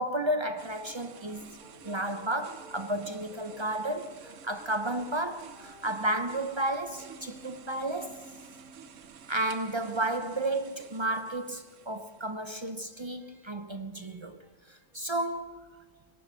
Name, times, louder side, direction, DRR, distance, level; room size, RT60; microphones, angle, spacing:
voice 1, 0.0-1.5 1.8-8.2 9.3-14.4 14.7-15.7, right 1 dB, 35° right, 0.5 m, -32 dB
sound 1, 0.6-12.9, right 7 dB, 90° right, 1.2 m, -51 dB
Brass instrument, 0.8-9.2 11.7-15.3, equal, ahead, 2.2 m, -55 dB
18.0 x 11.0 x 6.2 m
omnidirectional pair, 1.2 m